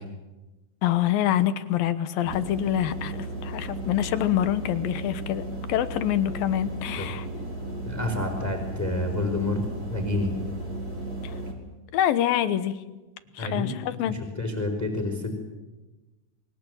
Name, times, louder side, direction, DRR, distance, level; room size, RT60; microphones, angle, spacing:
voice 1, 0.8-5.4 5.7-7.3 11.2-11.3 11.9-12.8 13.3-14.2, left 11 dB, 85° left, 12 dB, 3.0 m, -26 dB
sound 1, 2.2-11.5, right 2 dB, 25° right, 4.7 m, -35 dB
voice 2, 7.8-9.6 9.9-10.3 13.4-15.4, left 2 dB, 5° left, 3 dB, 4.4 m, -29 dB
28.5 x 23.5 x 8.1 m, 1.1 s
omnidirectional pair, 4.0 m